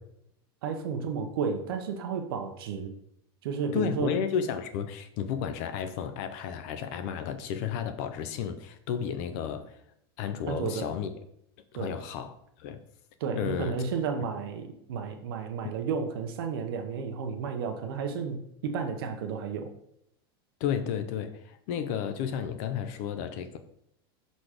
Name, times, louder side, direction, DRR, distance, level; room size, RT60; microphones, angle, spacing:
voice 1, 0.6-2.9 3.4-4.2 10.5-10.9 11.7-11.9 13.2-19.7, right 6 dB, 65° right, 0.8 m, -32 dB
voice 2, 3.7-9.8 10.2-11.1 11.7-12.8 13.4-13.8 20.6-23.6, left 8 dB, 40° left, 0.4 m, -32 dB
6.0 x 4.1 x 4.9 m
supercardioid pair, 175°, 13 cm